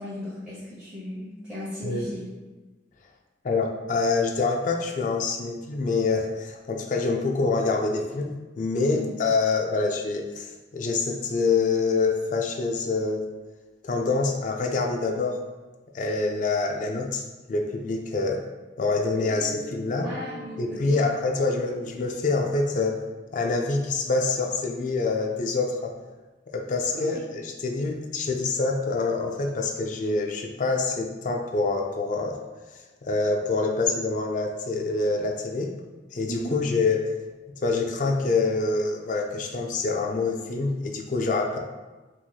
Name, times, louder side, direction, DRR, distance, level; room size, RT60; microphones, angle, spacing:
voice 1, 0.0-2.3 8.9-9.0 20.0-21.0 26.9-27.2 36.3-36.5, equal, 5° right, -10 dB, 0.7 m, -36 dB
voice 2, 3.4-13.3 13.8-15.4 15.9-17.2 17.5-18.4 18.8-20.1 20.6-23.0 23.3-26.0 26.5-32.4 33.0-35.7 36.1-37.1 37.6-41.6, left 3 dB, 45° left, 2 dB, 0.4 m, -26 dB
Mallet percussion, 19.1-23.6, left 2 dB, 70° left, 1.2 m, -44 dB
4.5 x 2.8 x 2.3 m, 1.2 s
head